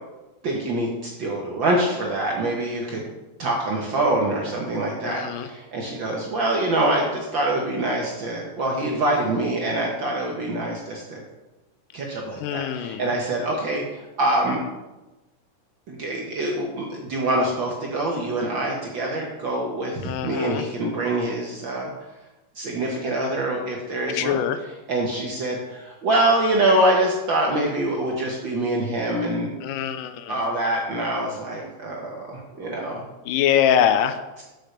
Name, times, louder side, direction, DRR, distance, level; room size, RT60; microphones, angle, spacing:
voice 1, 0.4-3.1 3.4-11.2 11.9-14.6 15.9-21.9 22.5-24.4 24.9-29.5 30.3-33.0, right 1 dB, 70° right, -1 dB, 1.1 m, -25 dB
voice 2, 5.0-5.5 12.4-13.1 20.0-20.7 24.1-24.6 29.6-30.4 33.3-34.4, left 9 dB, 85° left, 10 dB, 2.2 m, -23 dB
6.5 x 6.5 x 6.6 m, 1.1 s
omnidirectional pair, 3.7 m